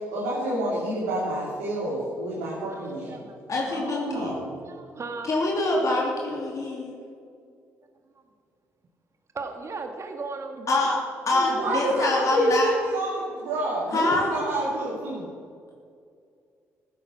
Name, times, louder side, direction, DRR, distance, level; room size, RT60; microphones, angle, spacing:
voice 1, 0.1-3.1 3.7-4.5 11.6-15.2, right 1 dB, 80° right, -6 dB, 3.2 m, -28 dB
voice 2, 2.7-3.4 4.4-5.3 9.3-10.9 11.3-12.1 14.1-14.2, right 3 dB, 40° right, 5 dB, 1.7 m, -36 dB
voice 3, 3.5-4.4 5.2-6.9 10.7-11.0 11.3-12.7 13.9-14.4, left 2 dB, 50° left, -2 dB, 3.2 m, -25 dB
15.0 x 10.5 x 5.9 m, 2.3 s
hypercardioid pair, 45°, 7 cm